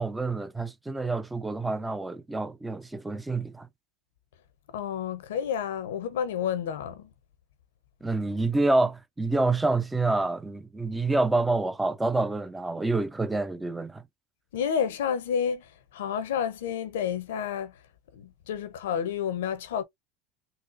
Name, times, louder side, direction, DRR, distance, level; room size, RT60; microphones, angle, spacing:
voice 1, 0.0-3.7 8.0-14.0, right 2 dB, 10° right, 0.4 m, -27 dB
voice 2, 4.7-7.1 14.5-17.7 18.1-19.8, left 8 dB, 85° left, 0.7 m, -30 dB
4.1 x 2.1 x 2.5 m
supercardioid pair, 110°, 0 cm